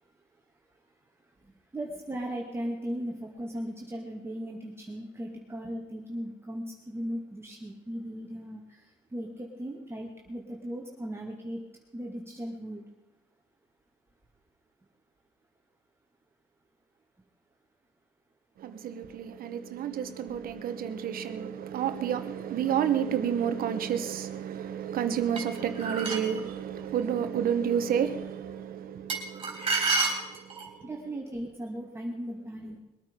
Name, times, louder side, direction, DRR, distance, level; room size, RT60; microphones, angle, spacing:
voice 1, 1.4-11.6 11.9-12.8 30.8-32.8, equal, 15° right, 2.1 m, -37 dB
voice 2, 18.6-30.7, right 8 dB, 60° right, 1.2 m, -30 dB
sound 1, 25.4-26.4 29.1-30.8, right 3 dB, 30° right, 3.5 m, -29 dB
21.5 x 9.0 x 5.2 m
cardioid pair, 110°, 17 cm